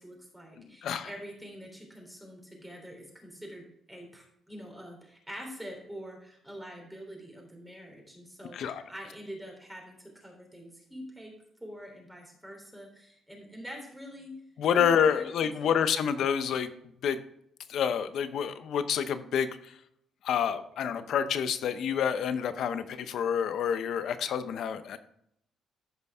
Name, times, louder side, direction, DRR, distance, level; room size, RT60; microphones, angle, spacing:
voice 1, 0.0-11.3 11.6-14.3 14.7-15.9, equal, 5° right, 0 dB, 3.4 m, -45 dB
voice 2, 14.6-16.7 17.0-17.2 17.7-19.5 20.2-25.0, left 8 dB, 70° left, 11 dB, 0.8 m, -28 dB
14.0 x 5.4 x 3.6 m, 0.73 s
cardioid pair, 90°, 0 cm